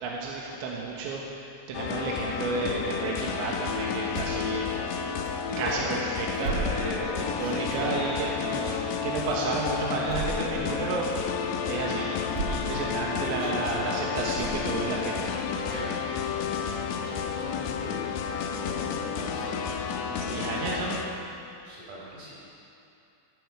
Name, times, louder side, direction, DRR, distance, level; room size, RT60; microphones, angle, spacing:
voice 1, 0.0-4.7 5.6-6.6 7.4-8.7 9.0-11.3 11.6-12.2 12.5-15.4 20.2-21.0, right 3 dB, 85° right, -3 dB, 3.6 m, -31 dB
sound 1, 1.7-21.1, left 7 dB, 80° left, 2.9 m, -31 dB
sound 2, 4.1-4.5 5.3-5.4 6.4-7.1 7.7-7.9 10.0-10.5 11.2-11.3 12.3-12.8 13.3-13.4 14.3-14.9, right 3 dB, 60° right, 1.8 m, -34 dB
voice 2, 5.5-5.9 6.3-8.1 8.7-8.9 13.4-14.2 15.5-19.6 19.9-20.5 21.6-22.4, right 1 dB, 45° right, -7 dB, 5.7 m, -39 dB
15.0 x 14.0 x 4.9 m, 2.7 s
omnidirectional pair, 5.1 m